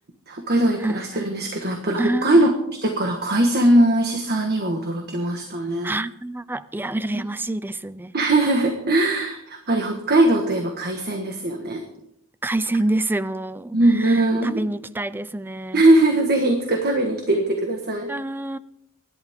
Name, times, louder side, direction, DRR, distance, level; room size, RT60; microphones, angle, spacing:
voice 1, 0.3-2.5 2.8-5.9 8.1-11.8 13.7-14.6 15.7-18.1, right 1 dB, 45° right, 1.6 m, -20 dB
voice 2, 2.0-2.5 5.8-8.1 12.4-15.8 18.1-18.6, right 1 dB, 10° right, 0.4 m, -27 dB
24.5 x 11.5 x 3.7 m
head